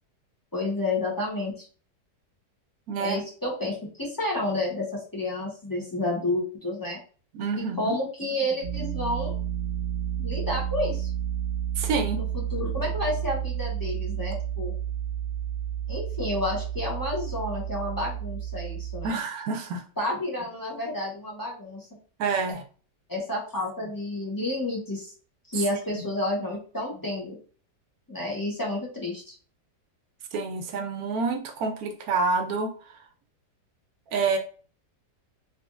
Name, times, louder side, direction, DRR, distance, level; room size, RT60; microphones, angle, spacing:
voice 1, 0.5-1.7 3.0-7.0 7.5-9.3 10.2-11.1 12.1-12.2 12.5-14.7 15.9-19.2 20.0-21.9 23.1-25.1 25.5-27.4 28.1-29.3, left 1 dB, 15° left, -4 dB, 0.7 m, -30 dB
voice 2, 2.9-3.2 7.3-7.9 11.8-12.2 19.0-19.8 22.2-22.6 25.9-26.0 30.3-33.0 34.1-34.4, right 4 dB, 70° right, 6 dB, 1.0 m, -28 dB
sound 1, 8.6-19.1, right 10 dB, 35° right, 1.1 m, -31 dB
3.6 x 3.5 x 2.5 m, 0.40 s
omnidirectional pair, 1.8 m